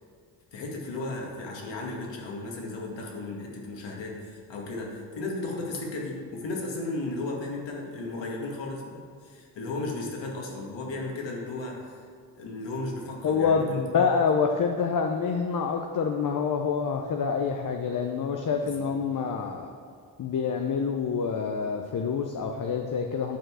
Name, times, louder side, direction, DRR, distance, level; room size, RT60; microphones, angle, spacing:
voice 1, 0.5-12.0 12.4-13.8 18.6-18.9, left 2 dB, 70° left, -1 dB, 2.1 m, -35 dB
voice 2, 13.2-19.7 20.2-23.4, left 5 dB, 45° left, 3 dB, 0.8 m, -27 dB
9.2 x 4.6 x 6.2 m, 2.2 s
supercardioid pair, 60°, 46 cm